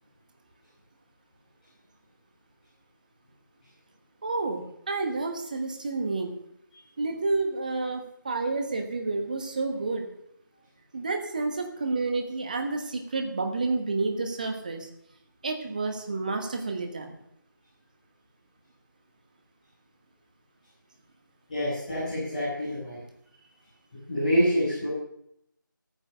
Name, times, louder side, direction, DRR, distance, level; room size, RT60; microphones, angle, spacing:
voice 1, 4.2-6.3 7.0-10.1 10.9-14.9 15.4-17.2, right 3 dB, 25° right, 5 dB, 1.2 m, -30 dB
voice 2, 21.5-23.0 24.1-24.9, equal, 20° left, -10 dB, 5.7 m, -26 dB
12.5 x 9.1 x 6.5 m, 0.75 s
figure-of-eight pair, 170°, 11 cm